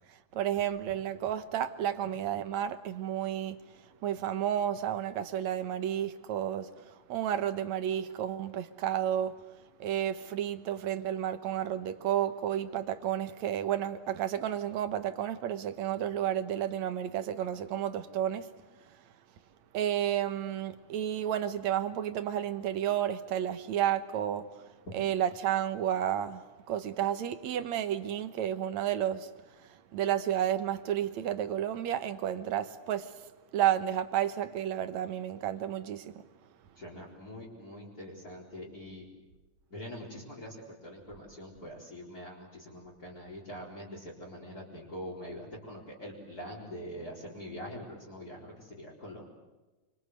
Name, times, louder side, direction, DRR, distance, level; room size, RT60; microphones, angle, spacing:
voice 1, 0.1-9.4 9.8-18.5 18.9-19.0 19.7-24.7 24.9-29.3 29.6-33.3 33.5-36.2, right 10 dB, 75° right, 2.5 m, -31 dB
voice 2, 36.8-39.0 39.7-49.2, equal, 30° left, 4.9 m, -44 dB
27.0 x 24.5 x 8.0 m
omnidirectional pair, 3.4 m